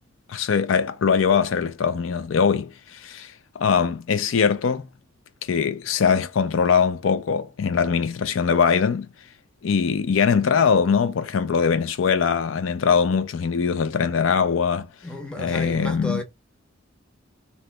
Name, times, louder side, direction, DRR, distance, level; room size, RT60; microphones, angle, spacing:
voice 1, 0.3-4.9 5.4-9.1 9.6-14.9 15.4-16.2, left 6 dB, 75° left, 0.4 m, -22 dB
voice 2, 15.0-16.2, left 1 dB, 5° left, 0.6 m, -32 dB
2.9 x 2.2 x 3.2 m
head